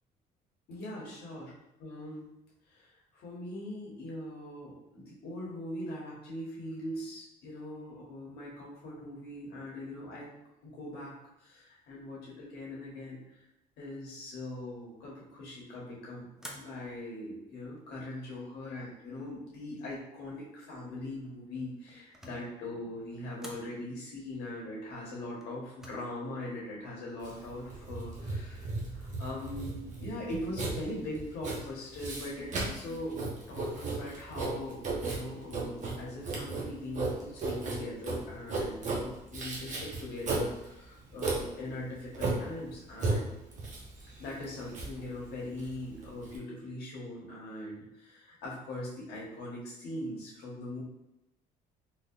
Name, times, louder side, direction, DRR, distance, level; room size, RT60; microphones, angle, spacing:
voice 1, 0.7-1.5 1.8-2.3 2.7-10.3 10.6-13.4 13.8-33.2 33.5-43.3 44.2-50.8, left 1 dB, 75° left, -4 dB, 1.3 m, -41 dB
sound 1, 16.4-17.1 17.8-18.4 21.6-22.5 23.4-23.7 25.4-25.9, equal, 5° right, 0.6 m, -49 dB
Writing, 27.2-46.4, right 3 dB, 45° right, 1.0 m, -35 dB
3.8 x 2.8 x 2.5 m, 0.91 s
cardioid pair, 110°, 17 cm